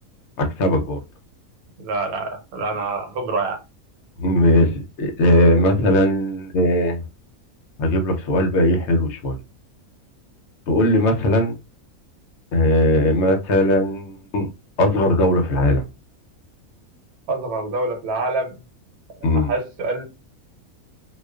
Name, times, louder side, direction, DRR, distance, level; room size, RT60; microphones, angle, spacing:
voice 1, 0.4-1.0 4.2-7.0 7.8-9.4 10.7-11.5 12.5-14.5 14.8-15.8 19.2-19.5, left 1 dB, 65° left, 0.7 m, -18 dB
voice 2, 1.8-3.6 17.3-18.5 19.2-20.0, right 3 dB, 80° right, 1.2 m, -26 dB
2.3 x 2.3 x 2.3 m
omnidirectional pair, 1.5 m